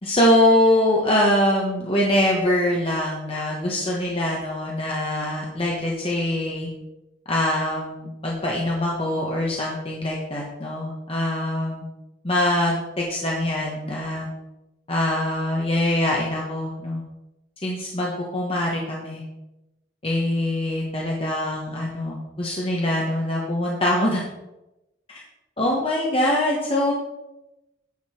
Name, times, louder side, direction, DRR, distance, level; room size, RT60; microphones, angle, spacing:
voice 1, 0.0-6.7 7.3-11.9 12.2-14.3 14.9-17.0 17.6-19.2 20.0-24.2 25.1-25.2 25.6-26.9, left 1 dB, 30° left, -3 dB, 1.3 m, -23 dB
9.6 x 7.0 x 4.4 m, 0.97 s
head